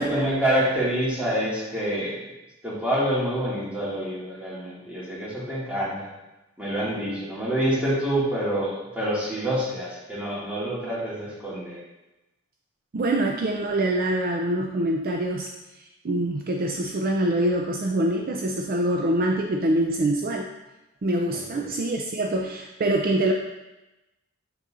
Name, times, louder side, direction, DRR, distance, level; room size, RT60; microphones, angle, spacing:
voice 1, 0.0-2.2 2.6-6.1 6.6-11.8 21.3-21.6, right 1 dB, 5° right, -8 dB, 2.0 m, -27 dB
voice 2, 12.9-15.5 15.8-20.5 21.0-23.3, right 1 dB, 45° right, 1 dB, 0.4 m, -25 dB
6.5 x 6.3 x 2.5 m, 1.0 s
head